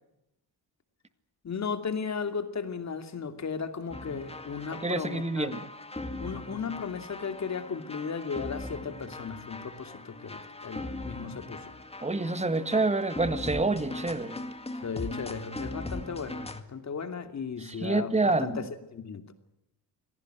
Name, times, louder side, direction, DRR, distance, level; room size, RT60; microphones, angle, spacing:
voice 1, 1.4-5.5 6.2-11.7 14.8-19.3, left 5 dB, 40° left, 2.7 m, -36 dB
sound 1, 3.9-16.6, left 2 dB, 15° left, 2.0 m, -40 dB
voice 2, 4.7-5.7 12.0-14.4 17.6-18.6, right 3 dB, 15° right, 1.8 m, -28 dB
26.5 x 18.0 x 7.9 m
cardioid pair, 125°, 40 cm